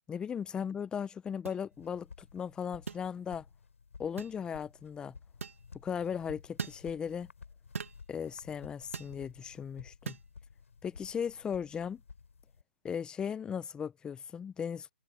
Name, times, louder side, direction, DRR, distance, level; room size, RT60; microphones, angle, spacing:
voice 1, 0.1-3.4 4.0-5.1 5.8-7.3 8.1-10.2 10.8-12.0 12.8-14.9, left 7 dB, 10° left, 0.7 m, -37 dB
sound 1, 1.5-1.6 2.9-3.1 4.2-4.4 5.4-5.6 6.6-6.8 7.7-8.0 8.9-9.2 10.1-10.3, right 5 dB, 80° right, 2.1 m, -40 dB
sound 2, 1.7-12.6, left 5 dB, 80° left, 3.6 m, -54 dB
hypercardioid pair, 140°, 7 cm